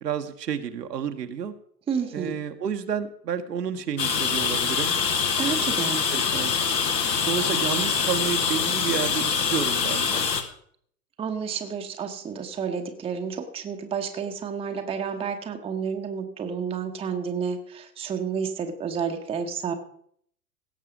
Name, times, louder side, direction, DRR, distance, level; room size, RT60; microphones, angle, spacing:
voice 1, 0.0-1.5 2.1-4.9 5.4-5.6 5.9-6.6 7.2-10.3, right 7 dB, 70° right, 7 dB, 1.2 m, -30 dB
voice 2, 1.9-2.4 5.4-6.0 11.2-19.7, right 6 dB, 10° right, 5 dB, 0.9 m, -30 dB
sound 1, 4.0-10.4, left 6 dB, 75° left, 1.5 m, -24 dB
17.0 x 6.7 x 5.0 m, 0.65 s
figure-of-eight pair, 105°, 50 cm